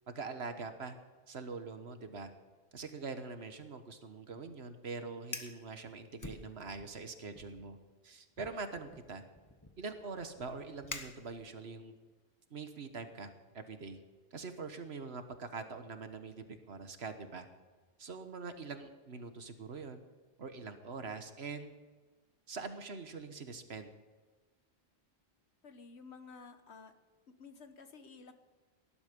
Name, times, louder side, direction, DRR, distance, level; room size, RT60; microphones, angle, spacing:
voice 1, 0.1-1.0 1.3-2.3 2.7-7.8 8.0-9.2 9.8-12.0 12.5-14.0 14.3-17.5 18.0-20.0 20.4-21.7 22.5-23.9, right 4 dB, 75° right, 8 dB, 1.6 m, -44 dB
Fire, 5.2-5.6 6.2-7.0 7.3-7.7 8.4-11.7, left 2 dB, 20° left, 1.1 m, -48 dB
voice 2, 25.6-26.9 27.3-28.3, left 4 dB, 90° left, 8 dB, 1.5 m, -52 dB
18.5 x 11.5 x 5.3 m, 1.3 s
omnidirectional pair, 1.1 m